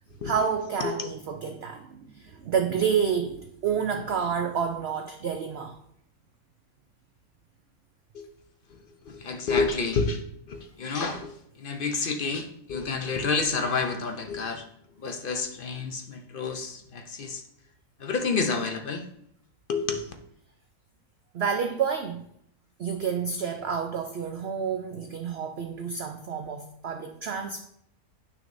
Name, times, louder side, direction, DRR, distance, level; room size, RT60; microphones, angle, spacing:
voice 1, 0.2-5.8 21.3-22.3 22.8-27.6, right 7 dB, 65° right, 5 dB, 0.6 m, -29 dB
voice 2, 9.1-10.2 10.5-11.3 11.6-14.6 15.0-17.4 18.0-19.0 19.7-20.1, left 4 dB, 55° left, 6 dB, 0.6 m, -29 dB
9.3 x 6.1 x 2.6 m, 0.71 s
omnidirectional pair, 1.5 m